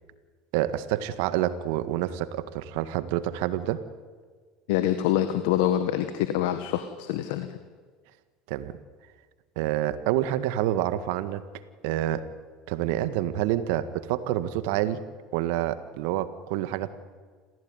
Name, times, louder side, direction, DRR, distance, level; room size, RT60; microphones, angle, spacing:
voice 1, 0.5-3.8 8.5-8.8 9.6-11.4 11.8-12.3 12.7-15.0 15.3-16.9, right 13 dB, 75° right, 12 dB, 1.7 m, -27 dB
voice 2, 4.7-7.6, left 11 dB, 75° left, 10 dB, 1.5 m, -25 dB
27.5 x 16.0 x 9.8 m, 1.5 s
hypercardioid pair, 85°, 0 cm